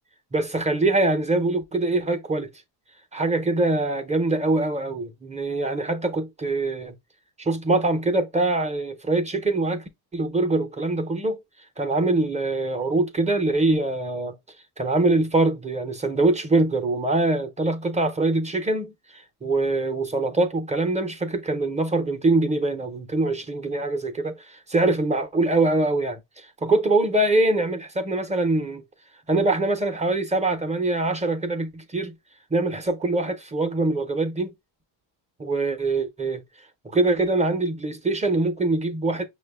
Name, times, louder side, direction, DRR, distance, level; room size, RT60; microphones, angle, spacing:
voice 1, 0.3-2.5 3.1-6.9 7.4-9.8 10.1-11.4 11.8-14.4 14.8-28.8 29.3-32.1 32.5-34.5 35.4-36.4 36.8-39.3, right 2 dB, 15° right, 0.5 m, -23 dB
5.9 x 2.2 x 3.3 m
cardioid pair, 140°, 45 cm